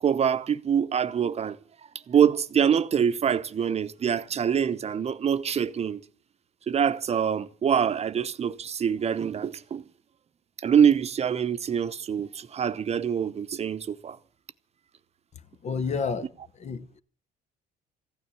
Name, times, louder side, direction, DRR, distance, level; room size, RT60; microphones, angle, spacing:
voice 1, 0.0-1.6 2.1-6.0 6.7-9.8 10.6-14.2, right 8 dB, 40° right, 0.9 m, -25 dB
voice 2, 15.6-17.0, left 5 dB, 40° left, 1.1 m, -31 dB
15.0 x 9.5 x 8.6 m
cardioid pair, 110°, 17 cm